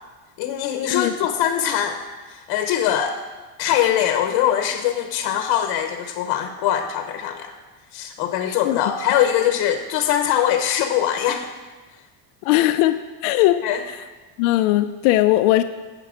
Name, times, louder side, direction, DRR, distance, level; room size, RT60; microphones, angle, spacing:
voice 1, 0.4-2.0 2.3-3.2 3.6-7.5 7.9-11.5 13.6-13.8, left 10 dB, 60° left, 6 dB, 1.0 m, -22 dB
voice 2, 8.5-8.8 12.4-13.6 13.9-14.0 14.4-15.6, left 15 dB, 85° left, 8 dB, 0.6 m, -19 dB
17.0 x 6.9 x 5.0 m, 1.3 s
cardioid pair, 165°, 42 cm